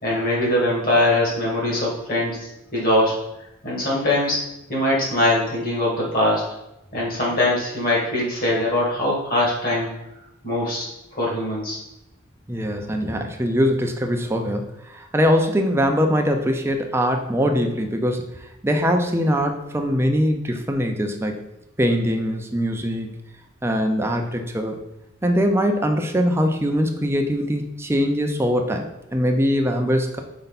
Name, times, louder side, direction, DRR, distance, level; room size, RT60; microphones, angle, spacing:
voice 1, 0.0-3.2 3.6-4.4 4.7-6.4 6.9-9.9 10.4-11.8, left 1 dB, 45° left, -4 dB, 2.1 m, -22 dB
voice 2, 12.5-18.3 18.6-21.4 21.8-23.1 23.6-24.8 25.2-30.2, equal, 10° right, 4 dB, 0.5 m, -22 dB
5.5 x 4.5 x 4.0 m, 0.89 s
head